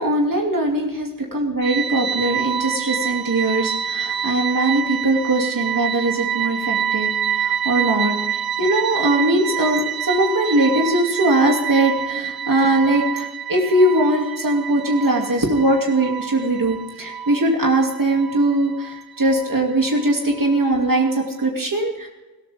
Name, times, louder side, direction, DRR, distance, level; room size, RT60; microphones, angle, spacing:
voice 1, 0.0-22.1, right 1 dB, 65° right, 0 dB, 2.6 m, -20 dB
sound 1, 1.6-21.5, right 8 dB, 85° right, 0.7 m, -27 dB
20.0 x 13.5 x 3.6 m, 1.1 s
wide cardioid pair, 50°, 36 cm